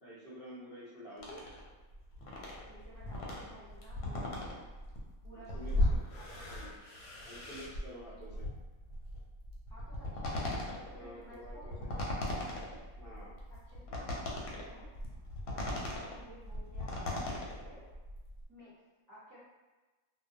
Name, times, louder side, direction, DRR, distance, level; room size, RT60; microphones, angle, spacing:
voice 1, 0.0-1.4 5.3-6.0 6.5-6.8 7.3-8.4 10.9-11.9 13.0-13.4, equal, 55° left, -12 dB, 0.7 m, -49 dB
sound 1, 1.2-18.4, left 1 dB, 85° left, 1.0 m, -38 dB
voice 2, 2.7-4.7 5.2-6.7 9.7-10.5 10.9-12.8 13.5-14.9 15.7-17.9 18.5-18.7 19.1-19.4, right 1 dB, 15° right, -12 dB, 1.0 m, -55 dB
2.3 x 2.1 x 2.6 m, 1.2 s
omnidirectional pair, 1.5 m